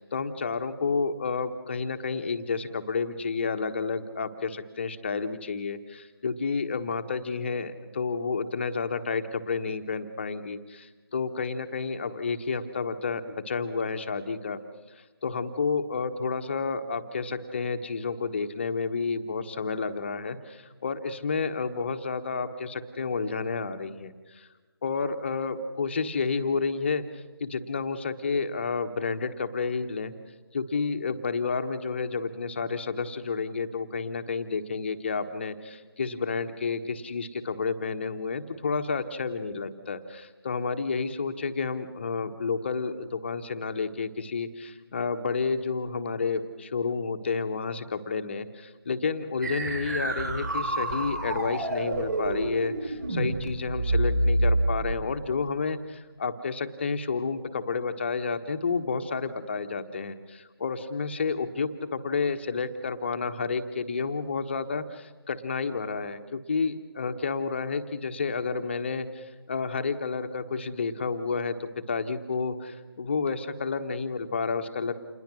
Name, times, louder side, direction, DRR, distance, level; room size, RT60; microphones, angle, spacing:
voice 1, 0.0-14.6 15.2-24.5 24.8-30.1 30.5-74.9, left 4 dB, 30° left, 8 dB, 1.3 m, -30 dB
sound 1, 49.4-55.1, right 1 dB, 45° right, 5.9 m, -28 dB
28.5 x 21.0 x 6.3 m, 1.4 s
figure-of-eight pair, 160°, 13 cm